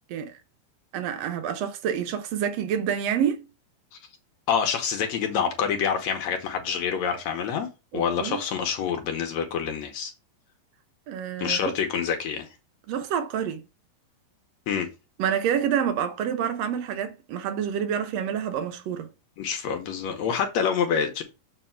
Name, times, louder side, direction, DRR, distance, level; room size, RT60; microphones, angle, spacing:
voice 1, 0.9-3.5 7.9-8.4 11.1-11.6 12.9-13.6 15.2-19.1, right 8 dB, 80° right, 1.5 m, -28 dB
voice 2, 4.5-10.1 11.4-12.5 14.7-14.9 19.4-21.2, left 7 dB, 75° left, 1.7 m, -27 dB
7.1 x 3.4 x 5.6 m
omnidirectional pair, 4.1 m